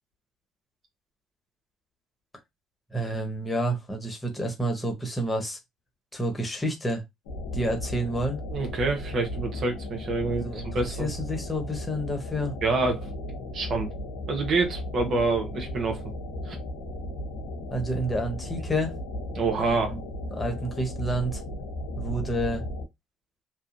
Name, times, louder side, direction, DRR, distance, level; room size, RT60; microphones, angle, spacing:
voice 1, 2.9-5.6 6.1-7.0 7.5-8.4 10.3-12.5 17.7-18.9 19.6-21.4 22.0-22.6, right 1 dB, 20° left, 1.2 m, -29 dB
sound 1, 7.2-22.9, left 1 dB, 85° left, 0.5 m, -35 dB
voice 2, 8.5-11.1 12.6-13.1 13.5-13.9 14.3-16.0 16.4-16.6 19.3-19.9, right 3 dB, 55° right, 1.0 m, -27 dB
2.7 x 2.3 x 2.6 m
hypercardioid pair, 60°, 0 cm